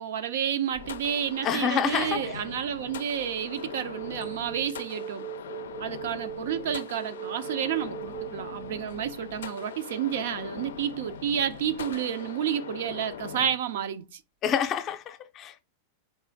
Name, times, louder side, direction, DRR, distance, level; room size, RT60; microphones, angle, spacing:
voice 1, 0.0-5.2 5.8-14.2, right 9 dB, 70° right, 0.6 m, -30 dB
sound 1, 0.7-1.5 3.2-10.8, right 13 dB, 35° right, 0.6 m, -42 dB
sound 2, 0.8-13.6, left 8 dB, 85° left, 0.4 m, -41 dB
voice 2, 1.4-2.2 14.4-15.6, left 8 dB, 35° left, 0.6 m, -27 dB
4.2 x 2.5 x 3.5 m
hypercardioid pair, 115°, 0 cm